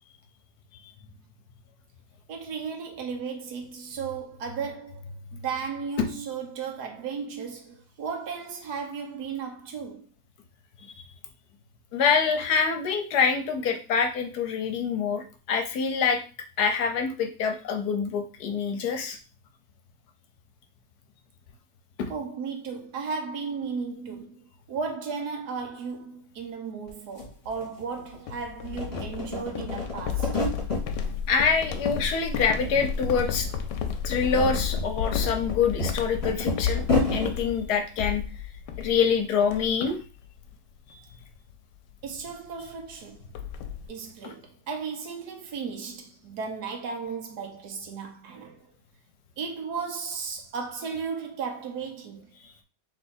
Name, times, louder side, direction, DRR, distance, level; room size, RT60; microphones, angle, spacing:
voice 1, 2.3-5.0 5.3-10.1 22.1-30.4 42.0-43.2 43.9-48.7 49.4-52.3, right 5 dB, 70° right, 1.3 m, -35 dB
voice 2, 11.9-16.2 16.6-19.2 22.0-22.1 31.3-33.5 34.0-36.8 37.1-38.2 38.8-40.0 40.9-41.0, left 6 dB, 70° left, 1.2 m, -25 dB
sound 1, 26.9-27.0 27.2-28.3 28.6-30.9 31.3-32.0 32.3-33.1 33.4-33.5 34.0-37.3, left 2 dB, 20° left, 1.9 m, -30 dB
sound 2, 28.3-39.1 39.4-39.9 40.2-40.5 40.9-41.1 42.2-42.3 42.6-42.7 42.9-43.9, left 7 dB, 90° left, 1.2 m, -32 dB
3.4 x 3.4 x 4.3 m
omnidirectional pair, 1.8 m